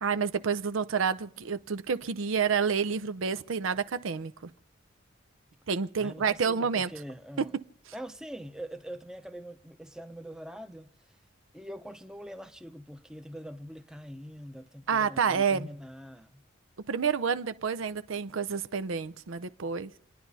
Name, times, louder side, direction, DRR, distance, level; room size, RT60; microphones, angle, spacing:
voice 1, 0.0-4.5 5.7-6.9 14.9-15.7 16.9-19.9, right 6 dB, 80° right, 0.6 m, -29 dB
voice 2, 6.0-7.5 7.9-11.1 11.5-16.5, equal, 5° right, 0.7 m, -43 dB
29.0 x 10.0 x 4.1 m
head